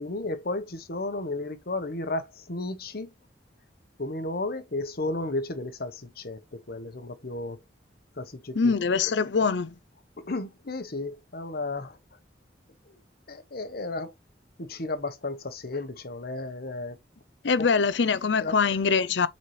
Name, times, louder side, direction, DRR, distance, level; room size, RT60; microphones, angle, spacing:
voice 1, 0.0-3.1 4.0-7.6 8.2-8.7 10.2-12.0 12.9-13.0 13.3-14.1 14.6-17.0 17.6-17.7 18.4-18.5, left 2 dB, 60° left, 1.1 m, -33 dB
voice 2, 8.6-9.7 17.4-19.3, left 5 dB, 75° left, 0.6 m, -23 dB
7.4 x 4.1 x 3.3 m
head